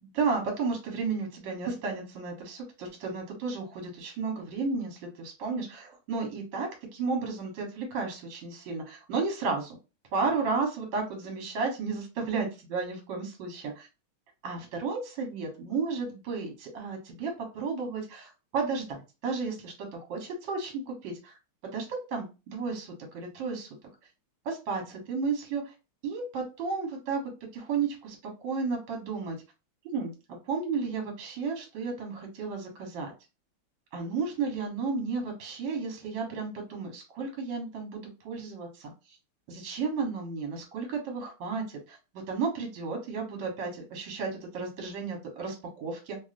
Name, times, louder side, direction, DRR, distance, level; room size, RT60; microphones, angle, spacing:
voice 1, 0.0-9.8 10.1-13.9 14.4-21.3 21.6-23.7 24.4-25.7 26.0-28.2 28.4-29.4 29.8-30.1 30.5-33.1 33.9-38.9 39.5-42.0 42.3-46.2, right 4 dB, 65° right, 1 dB, 1.6 m, -33 dB
3.3 x 2.4 x 2.4 m, 0.29 s
omnidirectional pair, 2.3 m